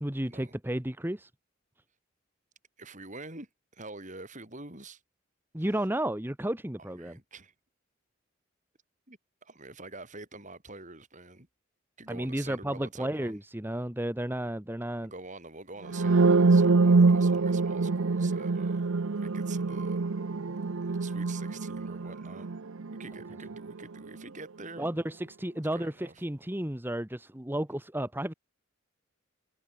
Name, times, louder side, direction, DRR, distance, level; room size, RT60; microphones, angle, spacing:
voice 1, 0.0-1.3 5.5-7.2 12.1-15.1 24.8-28.3, right 1 dB, 10° right, 1.2 m, -32 dB
voice 2, 2.8-5.0 6.9-7.5 9.1-11.5 12.0-13.4 15.0-18.8 19.1-20.0 20.8-22.5 23.0-24.9 25.7-26.2, right 3 dB, 40° right, 7.3 m, -46 dB
sound 1, 15.9-23.7, right 3 dB, 85° right, 0.7 m, -25 dB
head